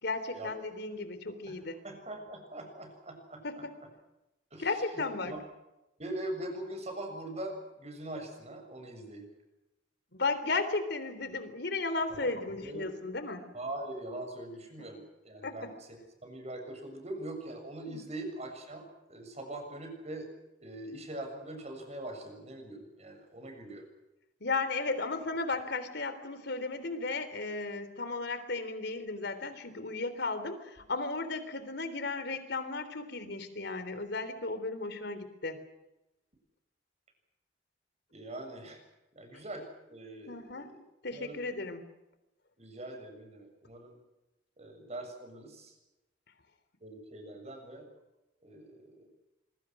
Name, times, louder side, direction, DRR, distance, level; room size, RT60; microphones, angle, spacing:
voice 1, 0.0-1.7 3.4-3.6 4.6-5.3 10.1-13.4 15.4-15.5 17.9-18.0 24.4-35.6 40.3-40.7 41.0-41.8, left 3 dB, 65° left, 11 dB, 3.6 m, -35 dB
voice 2, 1.5-3.9 4.5-5.4 6.0-9.3 12.1-12.3 12.6-13.0 13.5-15.9 16.2-20.3 20.6-23.8 38.1-38.8 39.1-40.8 41.1-41.5 42.6-44.0 44.6-45.8 46.8-47.9 48.4-49.1, right 1 dB, 40° right, 5 dB, 6.9 m, -42 dB
26.0 x 23.0 x 6.2 m, 0.96 s
head